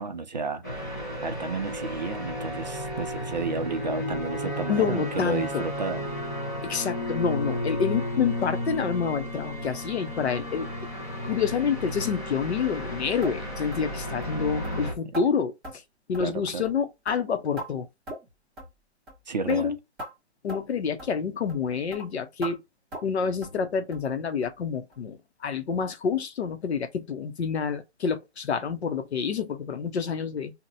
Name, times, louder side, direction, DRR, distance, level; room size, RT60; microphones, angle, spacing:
voice 1, 0.0-6.1 16.2-16.6 19.3-19.7, right 4 dB, 40° right, 0.5 m, -32 dB
sound 1, 0.6-14.9, left 1 dB, 15° left, 0.5 m, -33 dB
voice 2, 4.7-5.6 6.6-10.7 11.2-15.8 16.1-17.9 19.5-19.8 20.4-22.6 23.0-30.5, left 6 dB, 65° left, 0.8 m, -28 dB
sound 2, 13.2-13.4 13.7-13.9 14.2-14.3 14.6-14.8 15.1-15.3 15.6-15.8 16.1-16.4 16.6-16.8 17.1-17.7 18.1-18.3 18.6-18.7 19.1-19.2 19.5-19.6 20.0-20.1 20.5-20.6 21.0-21.1 21.5-21.6 21.9-22.0 22.4-22.5 22.9-23.1 23.4-23.6 23.9-24.1 24.4-24.5 24.9-25.0 25.4-25.5, equal, 5° right, 1.2 m, -39 dB
2.8 x 2.2 x 4.0 m
hypercardioid pair, 170°, 35 cm